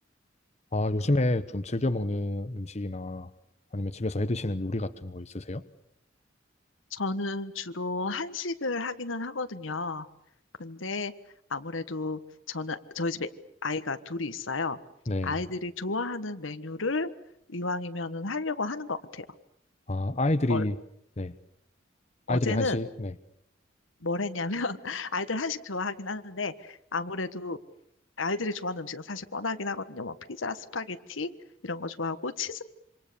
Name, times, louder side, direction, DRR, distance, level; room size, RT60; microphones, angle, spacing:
voice 1, 0.7-3.3 3.7-5.6 15.1-15.4 19.9-20.8 21.2-21.3 22.3-23.1, left 2 dB, 35° left, 10 dB, 1.0 m, -28 dB
voice 2, 6.9-10.1 10.6-11.1 11.5-12.2 12.5-13.3 13.6-14.8 15.2-17.1 17.5-19.2 20.5-20.6 22.3-22.8 24.0-27.6 28.2-31.3 31.6-32.7, left 3 dB, 85° left, 10 dB, 1.5 m, -32 dB
27.0 x 26.0 x 7.0 m, 0.77 s
head